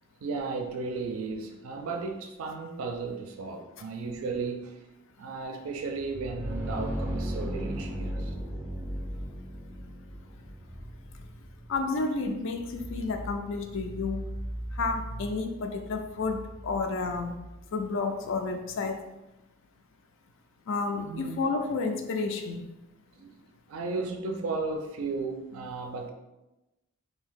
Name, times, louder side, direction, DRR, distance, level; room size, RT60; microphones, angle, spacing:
voice 1, 0.2-4.8 5.2-8.4 21.1-21.4 23.1-23.3 23.7-26.1, right 4 dB, 75° right, 4 dB, 0.4 m, -34 dB
sound 1, 5.9-17.5, equal, 10° right, 0.4 m, -37 dB
voice 2, 11.7-14.3 14.7-17.4 17.7-19.0 20.7-22.7, left 3 dB, 60° left, 5 dB, 0.4 m, -31 dB
2.8 x 2.6 x 3.6 m, 1.0 s
head